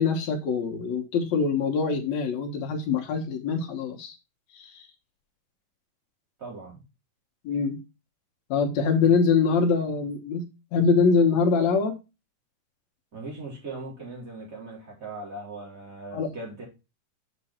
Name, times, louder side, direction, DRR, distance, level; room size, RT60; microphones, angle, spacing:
voice 1, 0.0-4.2 4.5-4.9 7.4-7.8 8.5-10.4 10.7-12.0 16.1-16.3, left 5 dB, 60° left, 2.2 m, -24 dB
voice 2, 6.4-6.8 13.1-16.6, right 2 dB, 25° right, 4.3 m, -39 dB
7.0 x 6.1 x 4.3 m
omnidirectional pair, 3.9 m